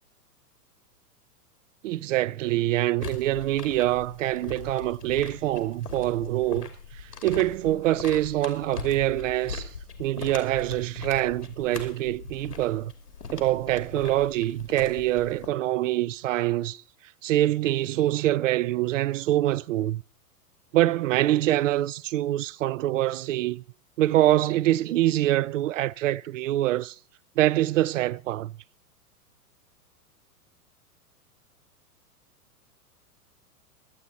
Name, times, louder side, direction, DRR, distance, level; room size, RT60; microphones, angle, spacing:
voice 1, 1.8-6.7 7.2-9.7 10.0-12.9 13.3-16.8 17.2-20.0 20.7-23.6 24.0-27.0 27.4-28.5, right 14 dB, 55° right, 0.6 m, -25 dB
sound 1, 3.0-15.5, left 5 dB, 85° left, 2.8 m, -40 dB
23.0 x 8.1 x 4.0 m
figure-of-eight pair, 105°, 46 cm